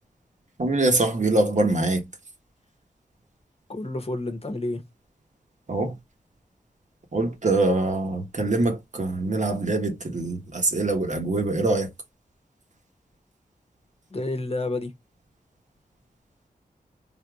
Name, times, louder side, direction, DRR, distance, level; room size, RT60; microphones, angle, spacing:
voice 1, 0.6-2.0 5.7-5.9 7.1-11.9, right 2 dB, 50° right, 1.1 m, -24 dB
voice 2, 3.7-4.9 14.1-14.9, left 2 dB, 40° left, 1.0 m, -30 dB
3.4 x 2.7 x 2.3 m
cardioid pair, 45°, 16 cm